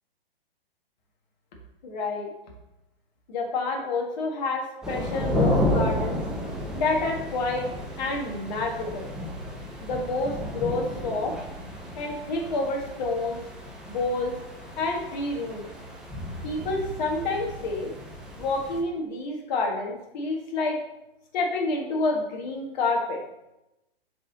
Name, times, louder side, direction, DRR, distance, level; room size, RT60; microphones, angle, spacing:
voice 1, 1.8-2.3 3.3-6.2 6.7-7.6 8.0-9.1 9.8-11.3 12.0-13.4 13.9-14.3 14.8-15.6 16.4-17.9 18.4-20.8 21.3-23.2, left 3 dB, 45° left, 0 dB, 1.7 m, -28 dB
sound 1, 4.8-18.8, left 1 dB, ahead, 0.5 m, -32 dB
7.2 x 4.3 x 4.0 m, 0.90 s
figure-of-eight pair, 120°, 31 cm